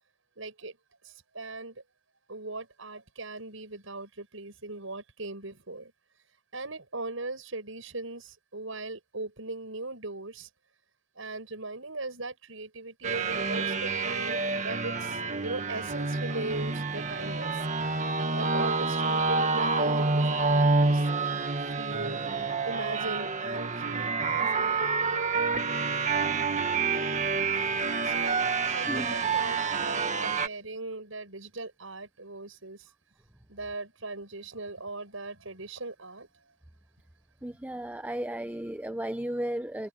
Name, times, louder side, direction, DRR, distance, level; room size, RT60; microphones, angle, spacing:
voice 1, 0.4-0.8 1.0-1.8 2.3-10.5 11.1-22.2 22.6-24.8 27.8-32.9 33.5-36.5, right 2 dB, 70° right, 7.8 m, -39 dB
sound 1, 13.0-30.5, right 4 dB, 35° right, 1.8 m, -28 dB
voice 2, 37.4-39.9, right 1 dB, 10° right, 0.8 m, -34 dB
head